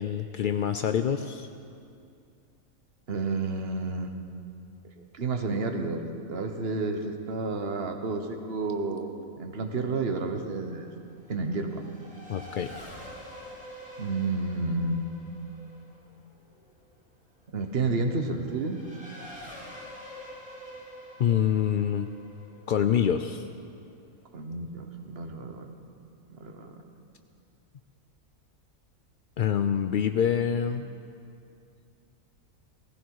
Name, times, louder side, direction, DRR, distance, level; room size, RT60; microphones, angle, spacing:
voice 1, 0.0-1.5 12.3-12.7 21.2-22.1 22.7-23.5 29.4-30.9, left 8 dB, 70° left, 8 dB, 0.4 m, -26 dB
voice 2, 3.1-4.2 5.0-6.0 6.3-9.1 9.4-10.9 11.3-11.9 14.0-15.5 17.5-18.8 24.3-25.7 26.3-26.8, right 3 dB, 50° right, 5 dB, 1.3 m, -31 dB
Race car auto racing / Accelerating revving vroom, 9.9-24.0, equal, 5° right, 3.3 m, -47 dB
17.5 x 16.0 x 4.7 m, 2.5 s
omnidirectional pair, 1.4 m